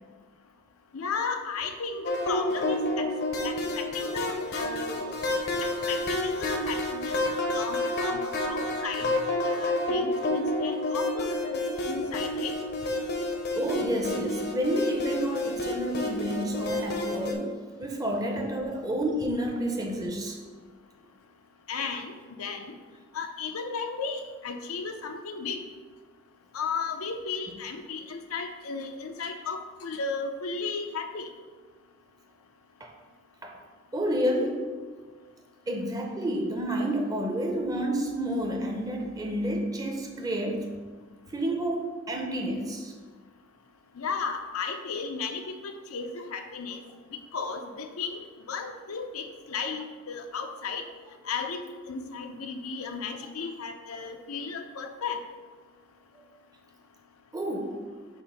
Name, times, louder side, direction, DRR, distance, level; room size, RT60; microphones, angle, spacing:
voice 1, 0.9-3.1 3.4-5.2 5.9-7.2 7.5-9.1 9.4-12.5 21.7-22.1 22.4-22.7 23.1-25.6 26.5-31.3 44.0-46.8 47.3-48.2 48.5-50.8 51.3-55.2, left 5 dB, 85° left, 5 dB, 0.6 m, -34 dB
sound 1, 2.0-17.3, left 1 dB, 50° left, 0.7 m, -29 dB
voice 2, 13.6-17.5 17.8-20.4 32.8-32.9 33.4-33.6 33.9-34.6 35.7-40.7 41.3-42.9 57.3-57.8, right 1 dB, 15° right, 1 dB, 0.7 m, -30 dB
7.0 x 2.6 x 5.3 m, 1.4 s
head